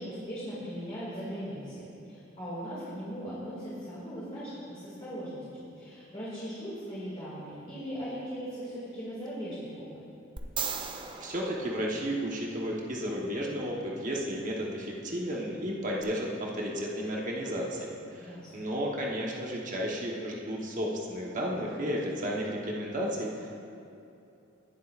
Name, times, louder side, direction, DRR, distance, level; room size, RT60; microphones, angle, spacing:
voice 1, 0.0-10.0 18.2-18.7, equal, 30° left, -10 dB, 2.2 m, -39 dB
sound 1, 10.4-12.6 16.0-16.1, right 6 dB, 25° right, 0.5 m, -38 dB
voice 2, 11.2-23.7, equal, 40° right, -3 dB, 1.1 m, -33 dB
18.5 x 7.4 x 2.5 m, 2.7 s
head